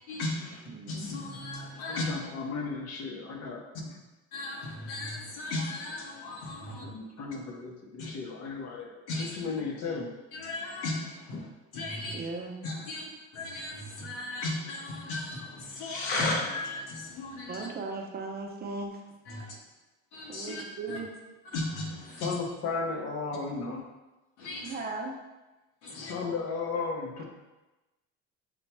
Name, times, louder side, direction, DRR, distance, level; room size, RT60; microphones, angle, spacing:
voice 1, 0.1-0.6 0.9-2.1 4.3-6.9 8.0-8.1 9.1-9.3 10.3-11.5 11.7-12.1 12.6-13.1 13.3-17.7 19.3-19.6 20.1-20.6 20.9-21.0 21.4-22.3 24.4-24.8 25.8-26.1, left 2 dB, 85° left, -2 dB, 1.2 m, -35 dB
voice 2, 0.7-1.1 12.1-12.6 13.0-13.1 17.5-19.0 20.3-21.1 24.6-25.2, right 3 dB, 30° right, 1 dB, 0.7 m, -37 dB
voice 3, 1.9-3.7 6.7-10.1 11.3-11.4 22.2-23.8 25.9-27.3, left 4 dB, 55° left, 0 dB, 1.1 m, -35 dB
7.4 x 2.9 x 2.2 m, 1.1 s
supercardioid pair, 100°, 32 cm